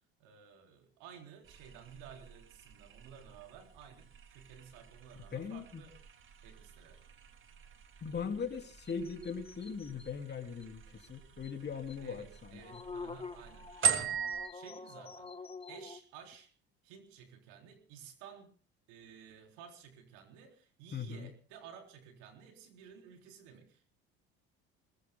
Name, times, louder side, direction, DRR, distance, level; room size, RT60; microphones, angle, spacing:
voice 1, 0.2-6.0 6.4-7.0 12.0-15.3 15.7-16.5 16.8-18.5 18.9-23.9, right 7 dB, 75° right, 4 dB, 3.7 m, -54 dB
sound 1, 1.4-14.5, right 6 dB, 40° right, 2.3 m, -41 dB
voice 2, 5.3-5.8 8.0-12.8 20.9-21.3, left 6 dB, 35° left, 5 dB, 3.1 m, -40 dB
sound 2, 8.8-10.1 10.6-10.7 11.0-11.1 11.4-11.5 11.9-12.0 12.3-16.0, left 4 dB, 20° left, 1.2 m, -47 dB
26.5 x 20.5 x 2.2 m, 0.39 s
hypercardioid pair, 75°, 30 cm